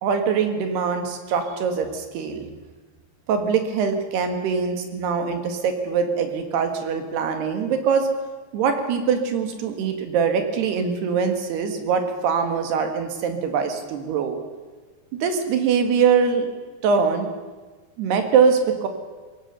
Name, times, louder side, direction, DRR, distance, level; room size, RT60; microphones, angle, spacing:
voice 1, 0.0-2.5 3.3-8.1 8.5-14.4 15.1-16.5 16.8-17.3 18.0-18.9, right 6 dB, 85° right, 6 dB, 3.9 m, -23 dB
22.5 x 17.5 x 6.9 m, 1.3 s
omnidirectional pair, 4.6 m